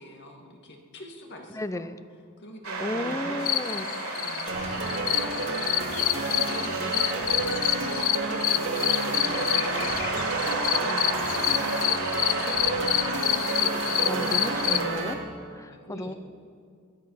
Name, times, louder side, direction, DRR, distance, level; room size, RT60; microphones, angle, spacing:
voice 1, 0.0-1.9 2.4-8.8 9.0-11.5 12.1-12.9 13.4-14.4 15.2-15.4 15.7-16.2, left 1 dB, 55° left, 2 dB, 2.0 m, -45 dB
voice 2, 1.5-2.0 2.8-3.9 14.0-15.2 15.5-16.1, left 1 dB, 15° left, 11 dB, 0.5 m, -33 dB
sound 1, 2.6-14.9, right 2 dB, 90° right, 3.5 m, -33 dB
sound 2, 3.4-14.8, left 13 dB, 75° left, 0.5 m, -28 dB
sound 3, 4.5-15.1, right 3 dB, 60° right, 2.3 m, -31 dB
21.5 x 11.0 x 5.8 m, 2.2 s
head